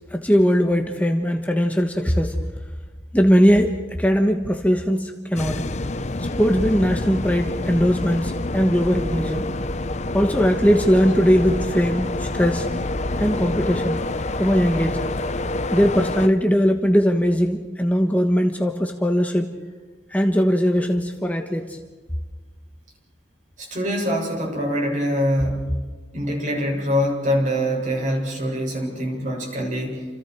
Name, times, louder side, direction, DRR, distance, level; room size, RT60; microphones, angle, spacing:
voice 1, 0.1-2.4 3.1-5.6 6.2-9.5 10.1-12.7 13.2-14.0 14.3-15.0 15.7-19.5 20.1-21.8, equal, 10° left, 4 dB, 1.3 m, -20 dB
sound 1, 5.4-16.3, left 2 dB, 40° left, 0.8 m, -27 dB
voice 2, 23.6-25.8 26.1-30.1, equal, 45° right, 1 dB, 7.2 m, -24 dB
29.5 x 28.0 x 4.8 m, 1.3 s
head